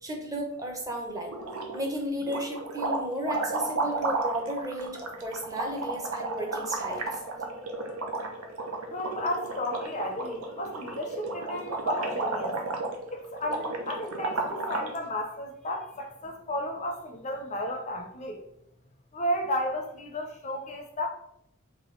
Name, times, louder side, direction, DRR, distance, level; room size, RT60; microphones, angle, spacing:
voice 1, 0.0-1.3 1.7-7.2, equal, 15° right, 1 dB, 0.7 m, -33 dB
sound 1, 1.3-1.9 2.2-15.0, right 3 dB, 85° right, 0.7 m, -33 dB
voice 2, 8.9-12.6 13.1-18.4 19.1-21.1, left 1 dB, 35° left, 3 dB, 0.5 m, -33 dB
3.5 x 3.1 x 3.8 m, 0.76 s
head